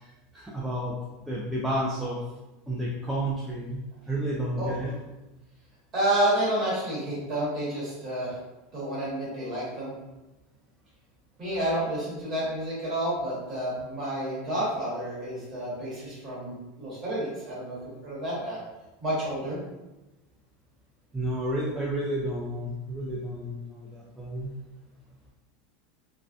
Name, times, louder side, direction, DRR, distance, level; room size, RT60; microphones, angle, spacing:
voice 1, 0.3-0.9 1.3-2.2 2.7-3.8 4.1-4.9 21.1-24.5, right 1 dB, 5° right, -6 dB, 0.3 m, -31 dB
voice 2, 5.9-8.3 8.7-9.9 11.4-18.6 19.0-19.6, right 1 dB, 25° right, -7 dB, 1.1 m, -30 dB
2.5 x 2.2 x 2.2 m, 1.0 s
supercardioid pair, 155°, 0 cm